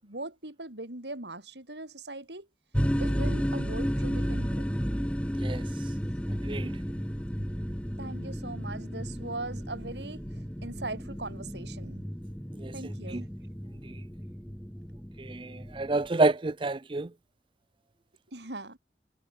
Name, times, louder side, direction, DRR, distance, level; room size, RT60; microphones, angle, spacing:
voice 1, 0.0-2.5 3.0-4.7 8.0-10.3 10.6-12.0 12.7-13.3 18.3-18.8, right 2 dB, 75° right, 6.0 m, -40 dB
sound 1, 2.7-16.1, equal, 5° left, 6.6 m, -33 dB
voice 2, 15.8-17.1, right 2 dB, 30° right, 0.5 m, -27 dB
head